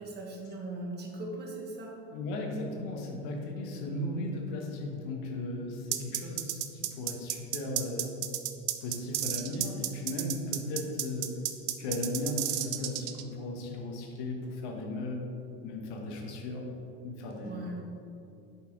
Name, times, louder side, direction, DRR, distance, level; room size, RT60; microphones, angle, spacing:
voice 1, 0.0-2.0 17.4-17.8, right 2 dB, 30° right, -1 dB, 1.6 m, -39 dB
voice 2, 2.1-8.1 8.8-11.4 11.8-15.3 15.6-16.7 17.0-17.7, left 2 dB, 75° left, 1 dB, 1.4 m, -36 dB
sound 1, 5.9-13.2, right 14 dB, 85° right, 0.6 m, -32 dB
7.3 x 4.4 x 4.9 m, 2.7 s
supercardioid pair, 100°, 33 cm